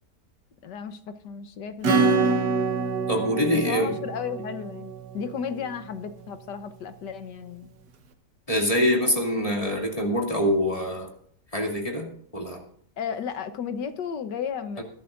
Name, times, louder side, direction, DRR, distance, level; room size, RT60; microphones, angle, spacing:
voice 1, 0.6-2.4 3.5-7.7 13.0-14.8, left 7 dB, 85° left, 9 dB, 1.6 m, -34 dB
Acoustic guitar / Strum, 1.8-6.1, right 4 dB, 80° right, 1.7 m, -26 dB
voice 2, 3.1-3.9 8.5-11.1 11.5-12.6 14.8-14.9, equal, 20° left, 0 dB, 2.5 m, -25 dB
21.0 x 11.5 x 2.6 m, 0.63 s
omnidirectional pair, 1.8 m